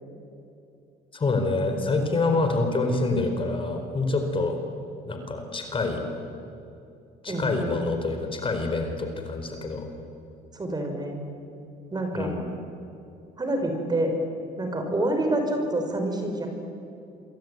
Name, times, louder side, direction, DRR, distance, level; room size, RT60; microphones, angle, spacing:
voice 1, 1.1-4.5 5.1-6.0 7.2-9.9 12.1-12.5, left 3 dB, 30° left, 5 dB, 4.4 m, -26 dB
voice 2, 7.3-7.7 10.5-11.2 11.9-12.3 13.4-14.2 14.6-16.5, right 1 dB, 25° right, 4 dB, 5.7 m, -27 dB
27.5 x 23.0 x 9.5 m, 2.7 s
cardioid pair, 110°, 17 cm